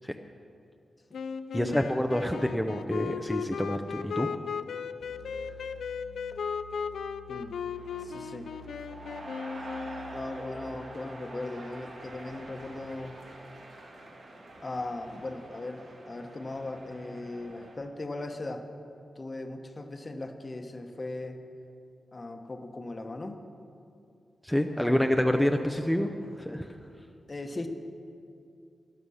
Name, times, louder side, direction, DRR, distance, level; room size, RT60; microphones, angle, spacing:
sound 1, 1.1-10.3, left 6 dB, 90° left, 0.4 m, -36 dB
voice 1, 1.5-4.3 24.4-26.1 26.4-26.7, equal, 5° left, 4 dB, 0.7 m, -27 dB
sound 2, 5.0-10.2, right 2 dB, 40° right, 1.4 m, -51 dB
voice 2, 7.3-7.6 8.0-8.5 10.1-13.2 14.6-18.7 19.1-21.4 22.1-23.4 24.8-25.2 27.3-27.7, left 2 dB, 35° left, 6 dB, 1.1 m, -38 dB
sound 3, 7.7-17.7, right 1 dB, 75° right, 2.5 m, -46 dB
12.5 x 11.0 x 6.4 m, 2.5 s
cardioid pair, 75°, 0 cm